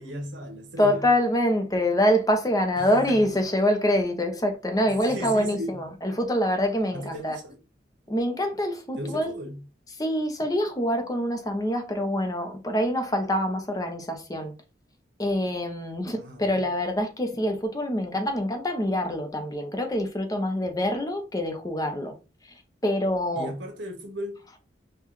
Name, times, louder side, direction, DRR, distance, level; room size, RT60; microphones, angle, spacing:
voice 1, 0.0-1.1 2.8-3.2 4.9-5.8 6.9-7.6 9.0-9.6 16.1-16.5 23.3-24.4, equal, 85° right, 1.1 m, -36 dB
voice 2, 0.8-7.4 8.1-9.4 10.0-14.5 15.2-22.1 22.8-23.5, left 1 dB, 20° left, 0.7 m, -25 dB
5.5 x 2.3 x 3.1 m
head